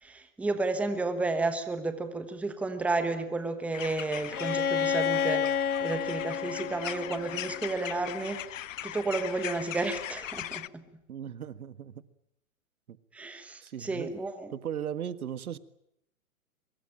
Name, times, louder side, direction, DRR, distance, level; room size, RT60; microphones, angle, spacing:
voice 1, 0.0-10.8 13.1-14.5, right 3 dB, 5° right, 9 dB, 1.2 m, -32 dB
sound 1, 3.7-10.7, left 12 dB, 60° left, 0.9 m, -40 dB
Bowed string instrument, 4.3-8.1, left 7 dB, 90° left, 1.7 m, -30 dB
voice 2, 11.1-12.0 12.9-13.0 13.6-14.1 14.5-15.6, right 9 dB, 80° right, 14 dB, 1.7 m, -37 dB
23.5 x 23.0 x 8.8 m, 0.78 s
hypercardioid pair, 155°, 43 cm